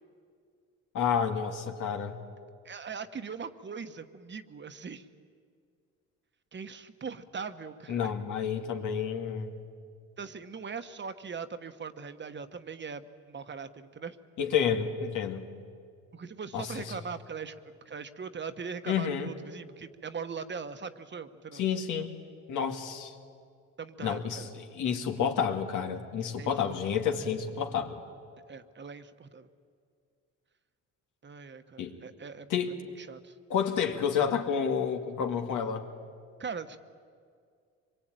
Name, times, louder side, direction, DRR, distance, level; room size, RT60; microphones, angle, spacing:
voice 1, 0.9-2.2 7.9-9.6 14.4-15.5 16.5-16.7 18.9-19.3 21.5-22.1 22.5-23.1 24.0-28.0 31.8-31.9 32.5-32.8 33.5-35.9, left 7 dB, 80° left, 4 dB, 2.3 m, -30 dB
voice 2, 2.6-5.1 6.5-8.1 10.2-14.2 16.1-17.6 17.8-21.6 23.8-24.5 26.4-27.0 28.5-29.5 31.2-33.3 36.4-36.8, right 5 dB, 35° right, 10 dB, 1.3 m, -41 dB
25.0 x 22.0 x 9.1 m, 2.2 s
cardioid pair, 90°, 30 cm